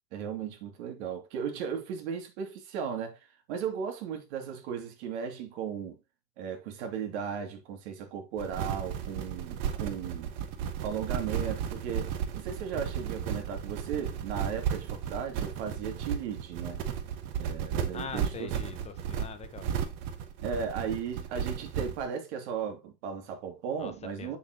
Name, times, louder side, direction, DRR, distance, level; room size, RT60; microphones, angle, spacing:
voice 1, 0.1-6.0 6.4-10.3 10.8-16.8 17.4-18.5 20.4-24.4, right 7 dB, 80° right, 2.6 m, -36 dB
sound 1, 8.4-22.0, right 8 dB, 50° right, 1.3 m, -34 dB
voice 2, 17.9-19.7 23.8-23.9 24.2-24.4, left 6 dB, 20° left, 0.9 m, -42 dB
7.5 x 7.0 x 2.9 m
cardioid pair, 165°, 33 cm